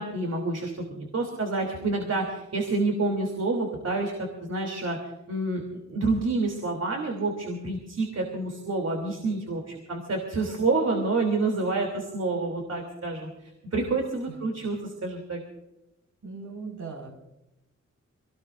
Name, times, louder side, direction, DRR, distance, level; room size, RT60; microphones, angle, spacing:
voice 1, 0.0-4.1 4.4-5.0 5.3-5.6 5.9-15.4, right 3 dB, 60° right, 2 dB, 3.2 m, -28 dB
voice 2, 16.2-17.1, right 4 dB, 75° right, -1 dB, 5.3 m, -38 dB
27.0 x 18.5 x 2.6 m, 0.95 s
wide cardioid pair, 155°, 29 cm